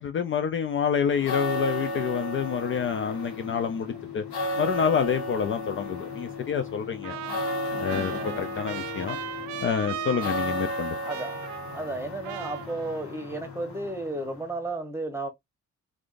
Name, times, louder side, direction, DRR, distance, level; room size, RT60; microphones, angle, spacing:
voice 1, 0.0-4.2 4.6-7.2 7.8-9.2 9.6-11.0, left 7 dB, 40° left, 0.4 m, -28 dB
sound 1, 1.0-14.6, left 1 dB, 65° left, 1.4 m, -34 dB
Trumpet, 7.0-12.0 12.2-13.3, right 13 dB, 70° right, 0.5 m, -38 dB
voice 2, 7.1-7.4 8.1-8.7 10.1-10.2 11.1-11.4 11.7-15.3, right 2 dB, 10° right, 1.0 m, -34 dB
3.4 x 2.5 x 2.5 m
cardioid pair, 90°, 30 cm